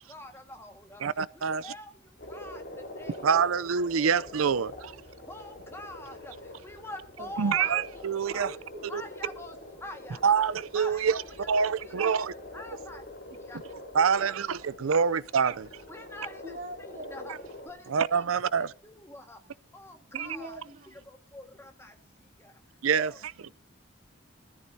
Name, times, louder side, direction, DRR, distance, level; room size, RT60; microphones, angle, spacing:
voice 1, 0.1-1.0 1.3-3.5 4.0-4.1 4.5-4.6 5.3-8.5 8.9-10.4 10.7-12.3 12.5-13.0 13.3-13.6 13.9-14.3 14.9-15.5 15.9-17.3 17.6-18.3 18.6-19.4 19.7-20.6 20.9-22.6 22.9-23.2, left 1 dB, 10° left, 1.7 m, -46 dB
voice 2, 1.0-1.7 3.2-4.9 7.4-8.5 8.9-9.0 10.2-11.2 11.5-12.3 13.9-15.7 17.3-17.4 17.9-18.7 22.8-23.1, right 6 dB, 90° right, 0.5 m, -26 dB
sound 1, 2.2-17.7, left 1 dB, 50° left, 2.9 m, -45 dB
voice 3, 8.4-8.9 9.2-9.4 14.0-14.3 14.6-14.9 15.9-16.1 16.4-17.3 20.1-21.1, right 1 dB, 40° right, 3.9 m, -43 dB
19.5 x 13.5 x 2.8 m
head